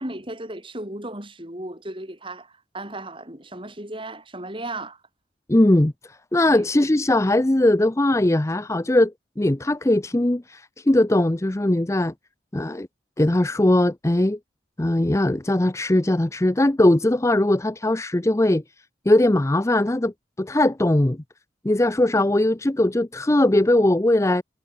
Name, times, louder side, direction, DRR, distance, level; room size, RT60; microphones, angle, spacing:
voice 1, 0.0-5.0 6.5-6.7, right 1 dB, 30° right, 6.5 m, -35 dB
voice 2, 5.5-5.9 6.3-12.1 12.5-12.9 13.2-14.4 14.8-18.6 19.1-21.2 21.6-24.4, left 1 dB, 15° left, 0.6 m, -20 dB
head